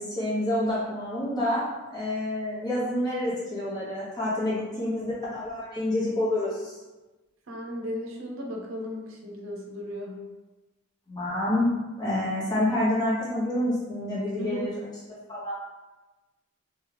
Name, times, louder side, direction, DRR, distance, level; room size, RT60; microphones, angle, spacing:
voice 1, 0.0-1.6 1.9-6.8 11.1-11.7 12.0-14.8 15.3-15.5, left 1 dB, 20° left, -8 dB, 1.0 m, -28 dB
voice 2, 7.5-10.2 14.4-14.7, equal, 75° right, -1 dB, 0.7 m, -36 dB
3.0 x 2.3 x 3.3 m, 1.1 s
head